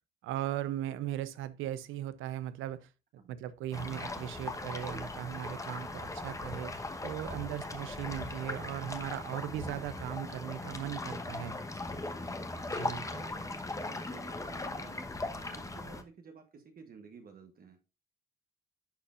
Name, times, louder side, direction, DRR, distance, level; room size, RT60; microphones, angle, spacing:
voice 1, 0.2-2.9 3.3-11.6 12.7-13.1, right 12 dB, 90° right, 0.6 m, -38 dB
sound 1, 3.7-16.0, left 2 dB, 15° left, 1.0 m, -39 dB
voice 2, 11.7-12.1 13.1-15.1 15.5-17.8, right 5 dB, 50° right, 1.1 m, -54 dB
11.5 x 4.2 x 2.4 m
cardioid pair, 90°, 20 cm